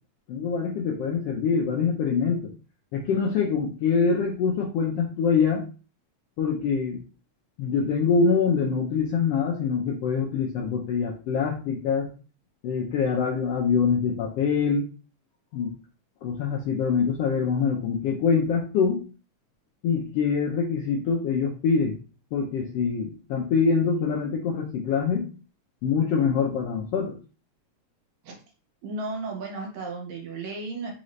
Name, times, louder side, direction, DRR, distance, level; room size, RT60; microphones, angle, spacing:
voice 1, 0.3-2.5 2.9-5.6 6.4-7.0 7.6-12.1 12.6-14.9 15.5-15.7 16.2-19.1 19.8-22.0 22.3-25.4 25.8-27.2, left 5 dB, 75° left, 0 dB, 1.4 m, -24 dB
voice 2, 28.8-31.0, right 3 dB, 75° right, 1 dB, 2.2 m, -34 dB
4.9 x 2.7 x 3.1 m, 0.36 s
omnidirectional pair, 3.4 m